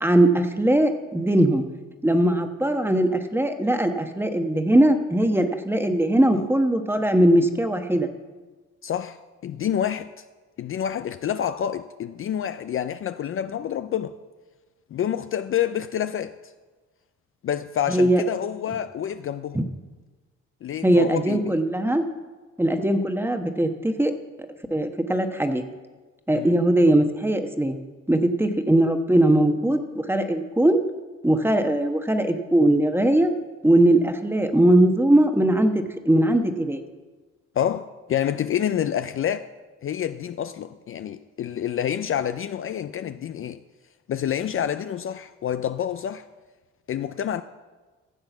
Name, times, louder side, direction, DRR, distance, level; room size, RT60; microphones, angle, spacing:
voice 1, 0.0-1.6 2.0-8.1 17.9-18.2 19.5-19.6 20.8-22.0 22.6-24.1 24.7-25.6 26.3-27.8 28.1-30.8 31.2-33.3 33.6-36.8, right 1 dB, 10° right, 1.1 m, -20 dB
voice 2, 8.8-9.2 9.4-10.1 10.6-14.1 14.9-16.5 17.4-19.6 20.6-21.6 26.3-26.6 37.6-39.5 39.8-43.6 44.1-46.2 46.9-47.4, left 9 dB, 45° left, 0.4 m, -28 dB
14.5 x 7.5 x 6.0 m
cardioid pair, 90°, 30 cm